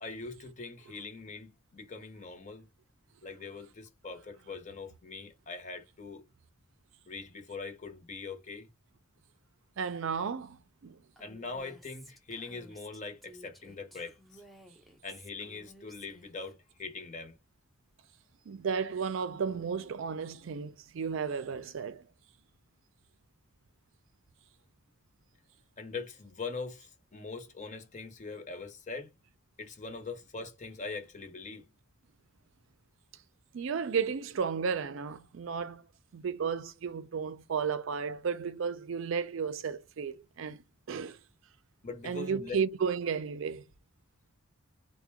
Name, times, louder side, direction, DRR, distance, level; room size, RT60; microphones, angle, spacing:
voice 1, 0.0-2.6 3.2-6.2 7.1-8.7 11.2-14.4 15.0-17.4 25.8-29.1 29.6-31.7 41.8-42.6, left 4 dB, 35° left, 0.8 m, -42 dB
voice 2, 9.8-11.0 18.5-22.0 33.5-35.8 36.1-40.6 40.9-41.2 42.0-43.6, right 6 dB, 65° right, 0.4 m, -33 dB
Female speech woman speaking, 11.2-16.5, equal, ahead, 0.5 m, -55 dB
3.6 x 2.1 x 3.4 m
head